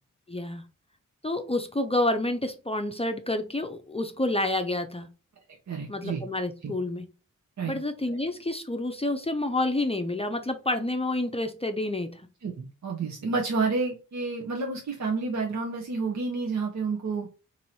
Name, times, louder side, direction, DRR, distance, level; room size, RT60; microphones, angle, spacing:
voice 1, 0.3-0.6 1.2-5.1 5.9-7.1 7.6-12.3, left 2 dB, 20° left, 6 dB, 0.6 m, -29 dB
voice 2, 5.7-6.2 6.6-6.7 7.6-7.8 8.1-8.2 12.4-17.3, right 4 dB, 55° right, 0 dB, 0.8 m, -30 dB
2.9 x 2.7 x 4.1 m, 0.33 s
cardioid pair, 50°, 33 cm